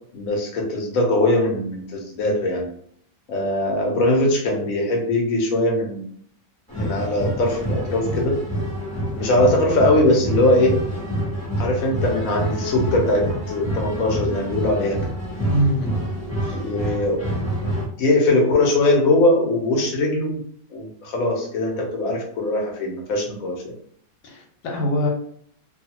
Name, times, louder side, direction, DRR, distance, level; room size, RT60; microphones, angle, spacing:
voice 1, 0.1-2.7 3.3-6.0 6.8-8.4 9.1-10.8 11.6-14.9 16.5-17.2 18.0-20.4 20.7-23.7, left 1 dB, 60° left, 0 dB, 1.1 m, -21 dB
sound 1, 6.7-17.8, equal, 5° left, 0.9 m, -27 dB
voice 2, 15.5-15.9 16.4-16.7 24.2-25.1, equal, 90° left, 0 dB, 1.4 m, -23 dB
2.7 x 2.4 x 2.8 m, 0.63 s
omnidirectional pair, 1.8 m